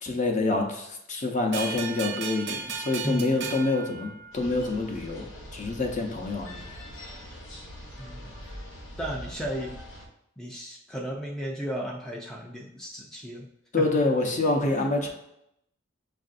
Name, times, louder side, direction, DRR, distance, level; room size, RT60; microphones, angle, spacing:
voice 1, 0.0-5.3 5.5-6.6 13.7-15.1, left 2 dB, 40° left, 2 dB, 0.7 m, -27 dB
sound 1, 1.5-4.8, right 6 dB, 60° right, 0.6 m, -36 dB
voice 2, 3.0-3.5 8.0-8.4 9.0-9.8 10.4-13.5 13.8-13.9 14.8-14.9, equal, 5° left, -2 dB, 0.4 m, -34 dB
sound 2, 4.3-10.1, equal, 80° left, 0.9 m, -43 dB
6.4 x 2.5 x 2.5 m, 0.79 s
head